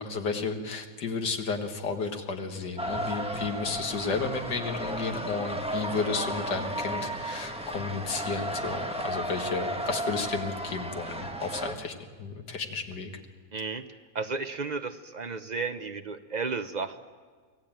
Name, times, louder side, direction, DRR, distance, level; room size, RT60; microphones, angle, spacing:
voice 1, 0.0-13.1, left 4 dB, 85° left, 5 dB, 2.3 m, -32 dB
sound 1, 2.8-11.7, right 1 dB, 5° right, 1.3 m, -34 dB
voice 2, 13.5-13.8 14.1-17.0, right 4 dB, 55° right, 9 dB, 0.4 m, -33 dB
24.5 x 16.0 x 9.0 m, 1.5 s
omnidirectional pair, 1.8 m